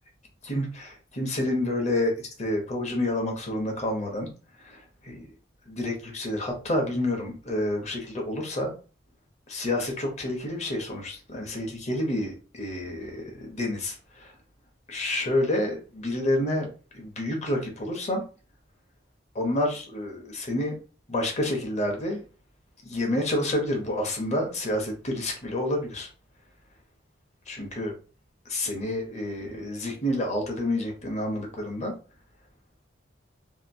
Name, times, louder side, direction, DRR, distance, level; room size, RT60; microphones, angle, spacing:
voice 1, 0.4-4.3 4.6-5.3 5.7-8.7 9.5-14.3 14.9-16.7 16.9-18.2 19.3-20.8 21.1-22.2 22.8-26.1 27.5-27.9 28.5-31.9, left 1 dB, 40° left, 1 dB, 0.8 m, -29 dB
2.9 x 2.6 x 2.7 m, 0.36 s
head